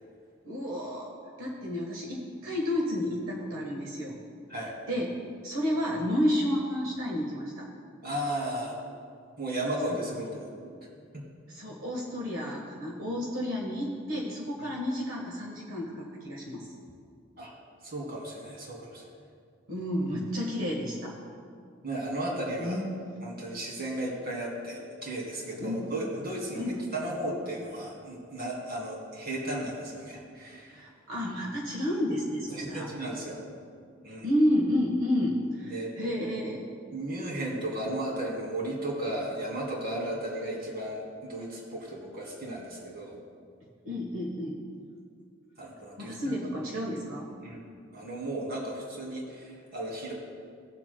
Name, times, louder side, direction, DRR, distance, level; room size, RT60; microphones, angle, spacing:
voice 1, 0.4-4.1 4.9-5.1 5.4-7.7 11.5-16.7 19.7-21.1 22.6-23.0 25.6-26.0 26.5-26.8 30.7-32.9 34.2-36.6 43.8-44.6 46.0-47.3, equal, 85° right, -2 dB, 1.3 m, -31 dB
voice 2, 8.0-8.8 9.4-10.7 11.1-11.3 14.6-14.7 17.4-17.5 17.8-19.1 21.8-22.8 23.2-30.8 32.5-33.4 34.0-34.3 35.6-35.9 36.9-43.2 45.6-46.5 47.4-50.1, right 1 dB, 50° right, -3 dB, 2.4 m, -35 dB
18.0 x 7.4 x 2.2 m, 2.2 s
head